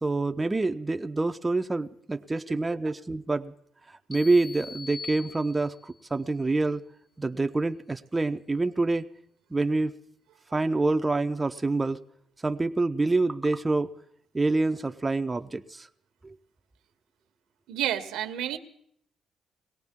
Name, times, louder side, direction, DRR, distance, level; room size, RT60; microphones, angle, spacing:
voice 1, 0.0-3.5 3.9-6.8 7.2-9.1 9.5-10.0 10.5-12.0 12.4-13.9 14.3-15.9 16.2-16.4, right 3 dB, 20° right, 7 dB, 0.5 m, -27 dB
sound 1, 4.1-6.0, left 4 dB, 45° left, 2.3 m, -42 dB
voice 2, 17.7-18.6, right 11 dB, 90° right, 9 dB, 0.9 m, -30 dB
21.5 x 17.5 x 3.6 m, 0.70 s
cardioid pair, 90°, 0 cm